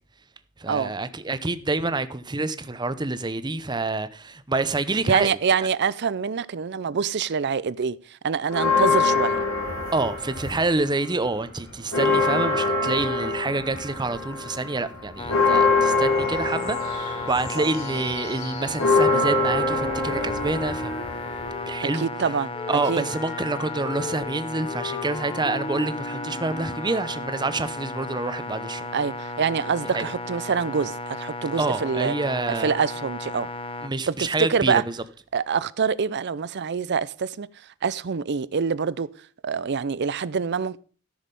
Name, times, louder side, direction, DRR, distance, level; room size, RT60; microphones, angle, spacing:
voice 1, 0.6-5.3 9.9-21.1 21.7-22.1 22.7-28.8 29.9-30.0 31.6-32.7 33.8-34.8, right 3 dB, 20° right, 0.7 m, -27 dB
voice 2, 5.1-9.4 17.6-17.7 21.9-23.1 28.9-32.1 32.6-33.5 34.1-34.8 35.3-37.5 37.8-39.1 39.4-40.8, right 6 dB, 55° right, 0.5 m, -25 dB
sound 1, 8.5-10.9 11.2-21.7, left 3 dB, 80° left, 4.0 m, -24 dB
sound 2, 15.2-33.9, left 2 dB, 25° left, 0.8 m, -35 dB
Wind instrument woodwind instrument, 19.1-22.0 22.5-27.4, left 3 dB, 60° left, 5.2 m, -37 dB
13.5 x 6.4 x 5.3 m
head